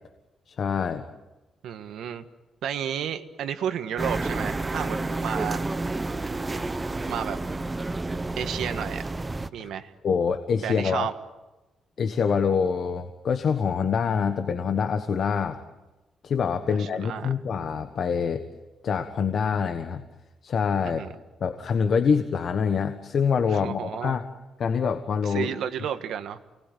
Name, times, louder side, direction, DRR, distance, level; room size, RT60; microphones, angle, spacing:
voice 1, 0.5-1.0 9.6-9.7 10.0-11.1 12.0-15.6 16.2-18.4 18.8-20.0 20.4-21.0 21.4-24.2 24.6-25.5, left 6 dB, 50° left, 7 dB, 1.3 m, -25 dB
voice 2, 1.6-2.2 2.6-5.7 6.5-6.6 7.1-7.4 8.4-9.1 9.5-9.9 10.6-11.1 16.7-17.3 20.8-21.1 23.5-24.2 25.2-26.4, right 9 dB, 85° right, 8 dB, 1.5 m, -32 dB
sound 1, 4.0-9.5, right 2 dB, 15° right, 0.8 m, -30 dB
29.5 x 20.0 x 9.3 m, 1.1 s
cardioid pair, 155°, 0 cm